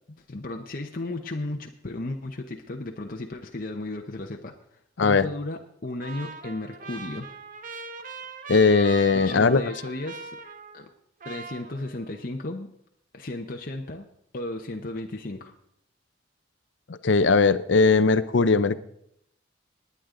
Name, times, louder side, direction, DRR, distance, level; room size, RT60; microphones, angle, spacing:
voice 1, 0.0-4.5 5.0-7.3 9.1-10.4 10.7-10.9 11.2-12.7 13.1-14.1 14.3-15.5, left 2 dB, 50° left, 2 dB, 0.9 m, -34 dB
Trumpet, 6.0-11.0 11.2-12.2, right 4 dB, 45° right, 1.0 m, -41 dB
voice 2, 8.5-9.6 17.0-18.8, left 4 dB, 70° left, 14 dB, 0.7 m, -19 dB
18.5 x 9.7 x 3.8 m, 0.73 s
head